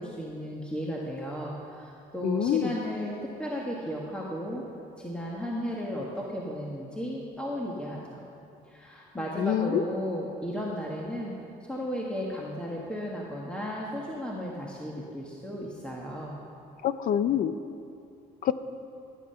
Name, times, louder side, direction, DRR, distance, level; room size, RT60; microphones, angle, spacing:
voice 1, 0.0-4.6 5.0-8.2 8.7-11.3 11.7-16.4, equal, 5° left, -3 dB, 1.6 m, -34 dB
voice 2, 2.2-2.8 9.4-9.8 16.8-17.5 18.4-18.5, left 10 dB, 55° left, 13 dB, 0.7 m, -26 dB
15.0 x 9.9 x 5.7 m, 2.7 s
cardioid pair, 110°, 17 cm